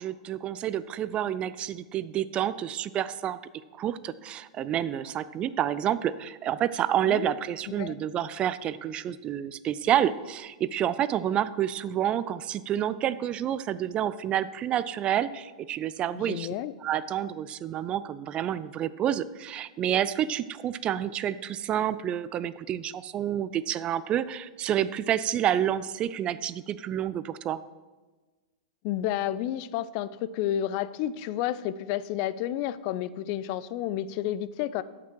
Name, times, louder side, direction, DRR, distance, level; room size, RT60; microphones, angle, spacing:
voice 1, 0.0-3.4 3.7-16.5 16.8-27.6, right 10 dB, 30° right, 16 dB, 0.4 m, -29 dB
voice 2, 7.7-8.0 16.1-16.7 28.8-34.8, left 12 dB, 50° left, 16 dB, 0.4 m, -31 dB
13.5 x 5.9 x 4.6 m, 1.3 s
hypercardioid pair, 125°, 4 cm